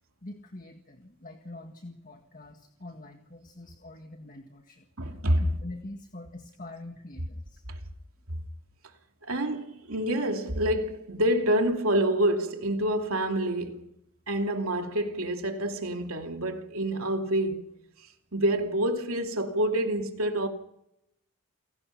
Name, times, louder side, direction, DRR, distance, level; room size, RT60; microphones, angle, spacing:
voice 1, 0.2-7.6, left 2 dB, 40° left, 1.8 m, -45 dB
voice 2, 5.0-5.4 7.7-7.8 9.3-13.9 14.3-17.6 18.3-20.5, right 1 dB, 80° right, 2.9 m, -27 dB
29.0 x 18.0 x 5.9 m
head